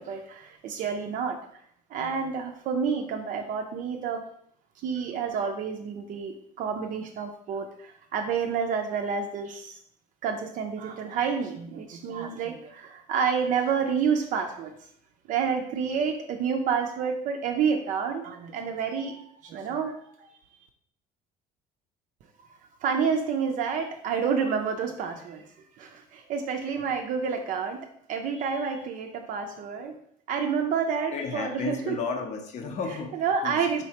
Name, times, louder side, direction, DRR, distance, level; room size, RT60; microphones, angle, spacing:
voice 1, 0.0-1.4 1.9-4.2 4.8-9.8 10.2-14.7 15.3-20.3 22.8-25.4 25.8-30.0 30.3-32.0 33.1-33.8, right 6 dB, 55° right, 4 dB, 0.4 m, -29 dB
voice 2, 31.1-33.1 33.4-33.5, left 4 dB, 45° left, 4 dB, 0.7 m, -32 dB
4.0 x 3.1 x 2.8 m, 0.69 s
cardioid pair, 115°, 16 cm